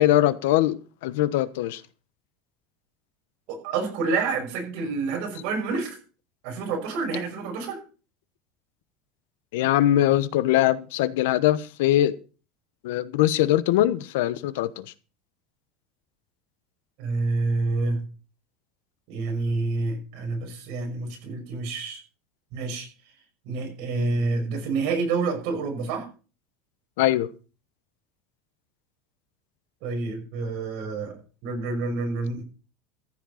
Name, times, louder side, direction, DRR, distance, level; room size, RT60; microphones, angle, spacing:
voice 1, 0.0-1.8 9.5-12.1 12.8-14.8 27.0-27.3, left 14 dB, 85° left, 1.1 m, -22 dB
voice 2, 3.5-6.0 6.4-7.8 17.0-18.0 19.1-22.0 22.5-22.9 23.5-26.1 29.8-31.2 31.4-32.4, right 3 dB, 55° right, 5.9 m, -28 dB
14.5 x 7.7 x 5.7 m
cardioid pair, 165°, 0 cm